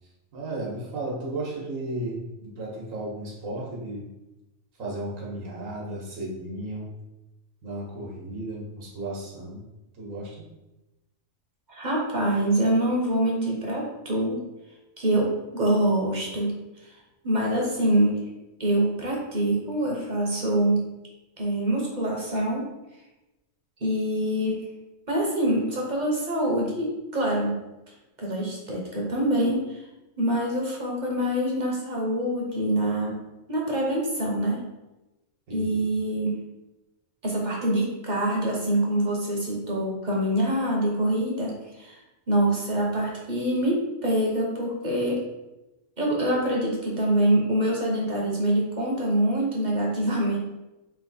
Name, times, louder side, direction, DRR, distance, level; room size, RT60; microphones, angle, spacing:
voice 1, 0.3-4.1 4.8-6.8 7.6-9.6 10.0-10.4 35.5-35.8, right 1 dB, 80° right, -3 dB, 1.4 m, -34 dB
voice 2, 11.7-14.4 15.0-16.6 16.8-16.9 17.2-18.2 18.6-20.9 21.4-22.7 23.8-24.6 25.1-27.6 28.2-29.8 30.2-33.2 33.5-34.6 35.5-36.4 37.2-42.0 42.3-45.2 46.0-50.4, right 1 dB, 40° right, -2 dB, 0.8 m, -25 dB
3.4 x 3.0 x 4.0 m, 0.99 s
omnidirectional pair, 1.4 m